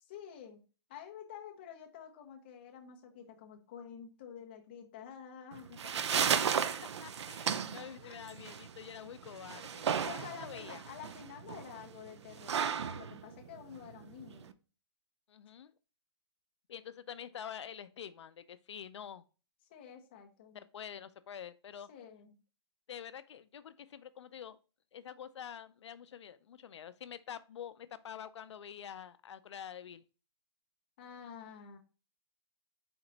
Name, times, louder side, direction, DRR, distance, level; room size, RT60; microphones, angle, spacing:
voice 1, 0.1-0.6 0.9-6.1 8.0-8.5 10.0-14.5 19.7-20.6 21.9-22.4 31.0-31.8, left 8 dB, 25° left, 0.6 m, -49 dB
sound 1, 5.5-14.5, right 7 dB, 90° right, 0.4 m, -35 dB
voice 2, 7.0-10.8 15.3-15.7 16.7-19.2 20.5-21.9 22.9-24.6 24.9-30.0, left 9 dB, 90° left, 0.4 m, -47 dB
4.3 x 2.9 x 3.9 m
hypercardioid pair, 175°, 14 cm